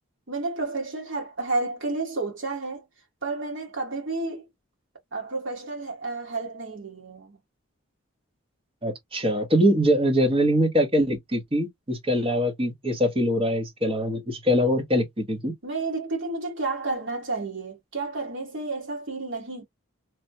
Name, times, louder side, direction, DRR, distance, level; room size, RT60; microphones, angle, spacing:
voice 1, 0.3-2.8 3.2-4.5 5.1-7.4 15.6-19.6, right 3 dB, 60° right, 1.5 m, -31 dB
voice 2, 8.8-15.5, equal, 25° right, 0.8 m, -23 dB
3.3 x 2.2 x 2.7 m
head